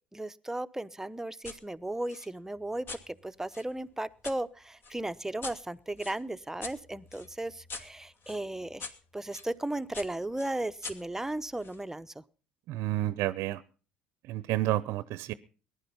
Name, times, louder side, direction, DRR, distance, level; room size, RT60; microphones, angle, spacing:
voice 1, 0.1-12.2, right 1 dB, 10° right, 12 dB, 0.9 m, -36 dB
sound 1, 1.4-1.6 2.1-4.4 4.8-9.5 9.9-11.8, left 4 dB, 45° left, 2.5 m, -45 dB
voice 2, 12.7-13.6 14.3-15.3, right 15 dB, 60° right, 17 dB, 0.7 m, -30 dB
19.5 x 11.0 x 5.5 m, 0.38 s
hypercardioid pair, 65°, 5 cm